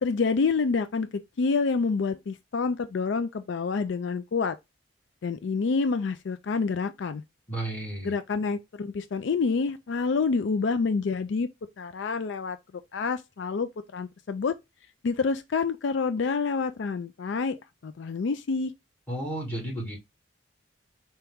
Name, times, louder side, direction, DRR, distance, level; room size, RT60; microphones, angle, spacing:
voice 1, 0.0-4.6 5.2-7.2 8.0-11.5 11.8-12.6 12.9-14.6 15.0-18.7, left 4 dB, 65° left, 0.4 m, -28 dB
voice 2, 7.5-8.1 19.1-20.0, right 1 dB, 10° left, 2.3 m, -32 dB
4.4 x 3.0 x 3.5 m
head